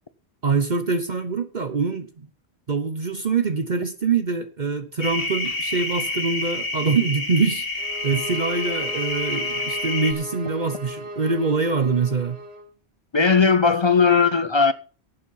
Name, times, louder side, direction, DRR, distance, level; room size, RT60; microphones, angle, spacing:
voice 1, 0.4-2.3 2.7-12.4, right 4 dB, 45° right, 1.0 m, -24 dB
sound 1, 5.0-10.1, left 2 dB, 60° left, 1.8 m, -28 dB
sound 2, 7.8-12.7, right 1 dB, 75° right, 1.8 m, -36 dB
voice 2, 13.1-14.7, left 5 dB, 35° left, 0.5 m, -17 dB
11.5 x 8.8 x 5.6 m
omnidirectional pair, 1.1 m